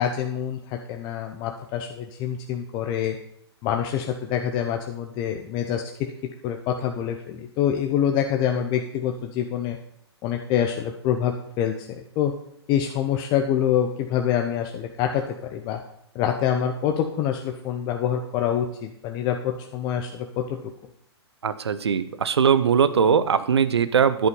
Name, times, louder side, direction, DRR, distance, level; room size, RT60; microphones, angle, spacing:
voice 1, 0.0-3.2 3.6-6.1 6.4-9.8 10.2-11.9 12.2-12.3 12.7-15.8 16.1-20.7, left 9 dB, 30° left, 3 dB, 0.9 m, -26 dB
voice 2, 21.4-24.3, right 7 dB, 70° right, 14 dB, 0.9 m, -20 dB
10.5 x 8.2 x 5.5 m, 0.72 s
figure-of-eight pair, 115°, 14 cm